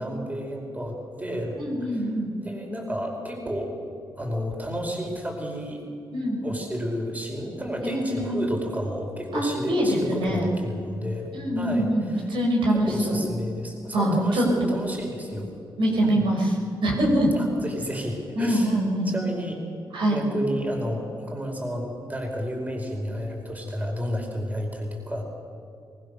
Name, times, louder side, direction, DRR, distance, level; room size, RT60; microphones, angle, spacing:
voice 1, 0.0-3.7 4.2-5.8 6.4-12.3 12.7-15.5 16.0-16.3 17.3-18.8 19.0-19.6 20.1-25.2, equal, 20° right, 1 dB, 5.0 m, -31 dB
voice 2, 1.6-2.3 6.1-6.4 8.1-8.4 9.3-10.5 11.3-13.2 13.9-14.8 15.8-16.5 16.8-17.4 18.4-19.1 19.9-20.2, right 1 dB, 75° right, -1 dB, 5.8 m, -24 dB
23.0 x 20.0 x 6.9 m, 2.5 s
cardioid pair, 70°, 9 cm